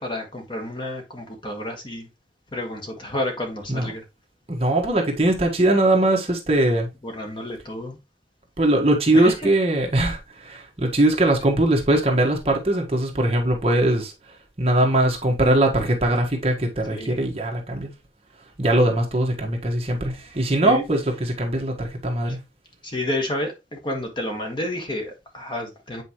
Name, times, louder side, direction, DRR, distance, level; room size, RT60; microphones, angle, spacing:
voice 1, 0.0-2.1 2.5-4.0 7.0-8.0 9.1-9.5 16.9-17.2 20.6-20.8 22.2-22.4 22.8-26.0, left 1 dB, 25° left, 1.3 m, -30 dB
voice 2, 4.5-6.9 8.6-14.1 14.6-17.9 18.6-22.4, right 1 dB, 35° right, 1.3 m, -21 dB
8.2 x 4.4 x 2.9 m
head